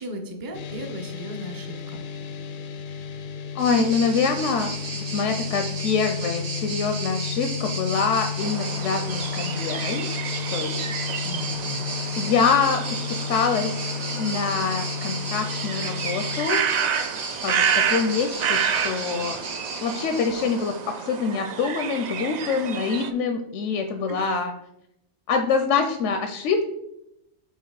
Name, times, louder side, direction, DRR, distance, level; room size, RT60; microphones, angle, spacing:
voice 1, 0.0-2.0 11.2-11.9 24.1-24.4, equal, 20° right, 5 dB, 0.6 m, -37 dB
sound 1, 0.5-16.5, left 7 dB, 60° left, 0.6 m, -33 dB
voice 2, 3.5-10.1 10.5-11.2 12.2-12.8 13.1-16.6 17.4-19.4 19.8-24.5 25.3-26.6, left 5 dB, 80° left, 6 dB, 0.9 m, -25 dB
sound 2, 3.6-21.0, right 3 dB, 85° right, 1.4 m, -34 dB
sound 3, 8.4-23.1, right 7 dB, 65° right, 0.4 m, -30 dB
5.7 x 4.0 x 4.7 m, 0.82 s
omnidirectional pair, 1.2 m